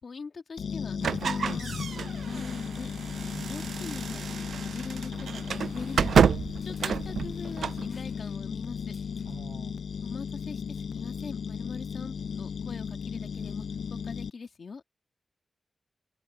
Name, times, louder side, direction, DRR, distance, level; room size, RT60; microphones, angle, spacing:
voice 1, 0.0-2.9 3.5-6.3 6.7-9.0 10.0-14.8, left 4 dB, 60° left, 2.2 m, -42 dB
sound 1, 0.6-14.3, left 6 dB, 80° left, 0.5 m, -35 dB
sound 2, 1.0-7.9, right 7 dB, 90° right, 0.3 m, -29 dB
sound 3, 4.7-9.7, left 3 dB, 40° left, 6.0 m, -60 dB
voice 2, 9.2-9.8, right 5 dB, 65° right, 7.2 m, -46 dB
cardioid pair, 80°, 0 cm